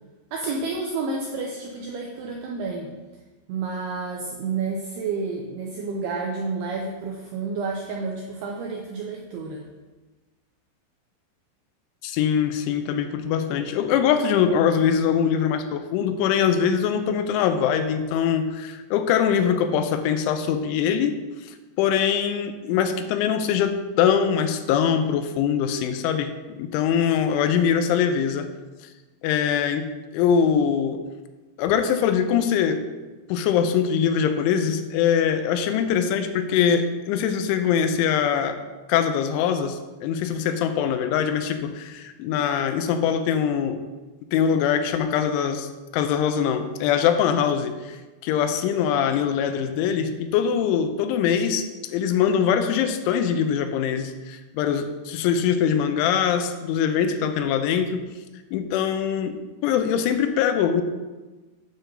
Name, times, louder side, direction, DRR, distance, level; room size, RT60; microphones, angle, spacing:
voice 1, 0.3-2.9 3.5-9.7, right 4 dB, 85° right, 0 dB, 2.3 m, -30 dB
voice 2, 12.0-28.5 29.2-31.0 31.6-32.8 33.3-38.6 38.9-43.8 44.3-58.0 58.5-59.4 59.6-60.8, left 8 dB, 85° left, 8 dB, 3.0 m, -23 dB
9.4 x 6.7 x 3.8 m, 1.2 s
omnidirectional pair, 5.5 m